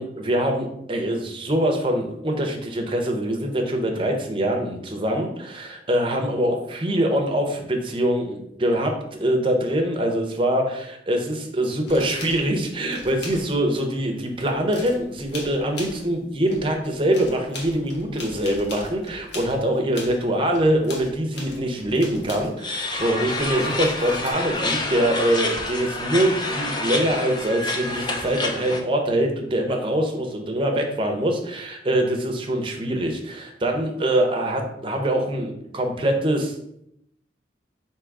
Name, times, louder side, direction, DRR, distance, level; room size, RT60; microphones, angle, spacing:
voice 1, 0.0-36.6, right 1 dB, 30° right, 3 dB, 0.6 m, -24 dB
sound 1, 11.9-13.9 14.1-16.2 16.5-22.9 23.4-24.3, left 2 dB, 75° left, 1.0 m, -40 dB
sound 2, 22.6-28.8, left 2 dB, 25° left, 0.5 m, -28 dB
3.6 x 2.9 x 4.6 m, 0.76 s
head